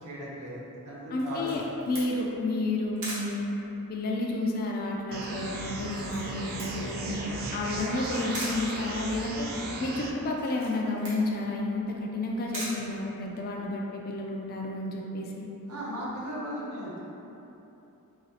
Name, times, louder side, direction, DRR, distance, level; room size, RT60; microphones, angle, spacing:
voice 1, 0.0-1.6 15.7-17.0, equal, 85° right, -6 dB, 0.8 m, -37 dB
voice 2, 1.1-3.5 3.9-7.2 7.5-15.5, left 2 dB, 45° left, -1 dB, 0.3 m, -31 dB
Camera, 1.2-13.7, right 1 dB, 60° right, 1.0 m, -43 dB
sound 1, 5.1-10.1, right 2 dB, 45° right, 0.3 m, -36 dB
4.1 x 2.3 x 2.7 m, 3.0 s
head